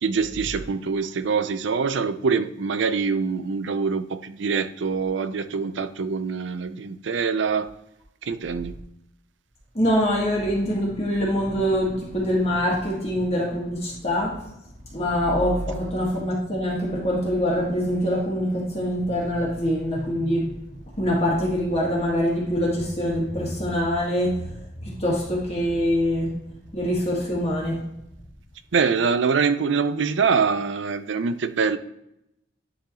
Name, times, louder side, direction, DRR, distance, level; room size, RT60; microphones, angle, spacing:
voice 1, 0.0-7.7 8.2-8.8 28.7-31.8, right 5 dB, 70° right, 0.5 m, -24 dB
voice 2, 9.7-14.4 14.9-20.5 21.0-24.4 24.8-26.3 26.7-27.8, equal, 30° left, 1.6 m, -24 dB
10.0 x 3.8 x 2.9 m
head